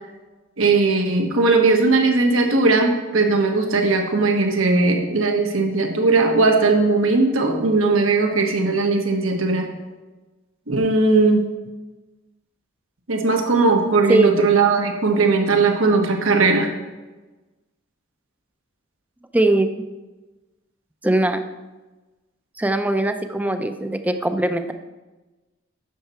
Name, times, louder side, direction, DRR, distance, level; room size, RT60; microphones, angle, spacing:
voice 1, 0.6-9.7 10.7-11.4 13.1-16.7, right 3 dB, 80° right, 3 dB, 1.4 m, -18 dB
voice 2, 14.1-14.6 19.3-19.7 21.0-21.4 22.6-24.7, right 2 dB, 10° right, 8 dB, 0.5 m, -20 dB
10.5 x 6.9 x 4.5 m, 1.2 s
head